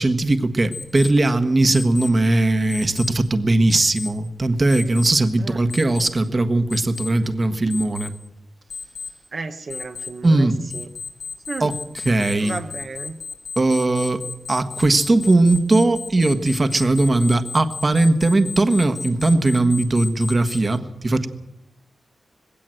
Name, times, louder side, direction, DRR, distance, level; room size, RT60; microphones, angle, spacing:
voice 1, 0.0-8.1 10.2-10.6 11.6-12.6 13.6-14.2 14.5-21.3, right 2 dB, 35° right, 9 dB, 1.5 m, -19 dB
Alarm, 0.7-1.1 1.7-2.1 2.7-3.1 3.7-4.1 4.7-5.1 5.7-6.1 6.7-7.1 7.7-8.1 8.7-9.1 9.7-10.1 10.7-20.6, left 5 dB, 80° left, 6.5 m, -33 dB
voice 2, 9.3-10.5 10.7-10.9 11.5-11.7 12.4-13.2, right 4 dB, 55° right, 5 dB, 1.2 m, -33 dB
20.5 x 17.0 x 7.7 m, 0.91 s
wide cardioid pair, 100°, 0 cm